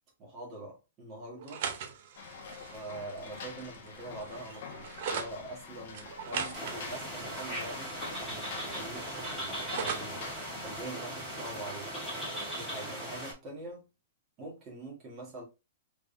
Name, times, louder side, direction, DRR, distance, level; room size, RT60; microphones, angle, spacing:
voice 1, 0.2-1.6 2.7-8.0 8.3-10.2 10.6-11.9 12.5-13.9 14.4-15.4, right 2 dB, 20° right, 1.8 m, -44 dB
sound 1, 1.4-5.3 5.9-8.3 8.6-10.2, right 7 dB, 45° right, 0.6 m, -40 dB
sound 2, 2.1-10.8, left 5 dB, 50° left, 1.1 m, -46 dB
sound 3, 6.5-13.3, right 1 dB, ahead, 1.6 m, -38 dB
3.7 x 3.5 x 2.7 m
hypercardioid pair, 170°, 0 cm